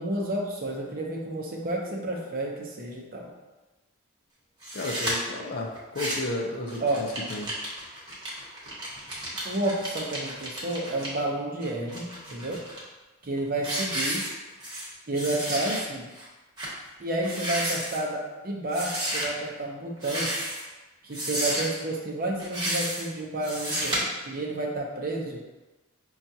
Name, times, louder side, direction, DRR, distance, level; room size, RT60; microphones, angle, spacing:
voice 1, 0.0-3.3 6.8-7.1 9.4-12.6 13.2-14.2 15.1-16.1 17.0-20.3 21.0-25.4, right 2 dB, 40° right, 0 dB, 0.6 m, -30 dB
sound 1, 4.6-5.1 5.8-6.4 6.7-11.1 11.6-12.8 13.2-13.4 13.6-14.9 15.1-15.8 16.2-16.3 16.6-16.7 17.2-18.0 18.7-19.3 20.0-20.7 21.1-21.8 22.4-23.1 23.4-24.0, right 1 dB, 20° right, 1.0 m, -32 dB
voice 2, 4.7-7.5, left 2 dB, 45° left, 1 dB, 0.5 m, -33 dB
5.6 x 2.4 x 2.7 m, 1.1 s
head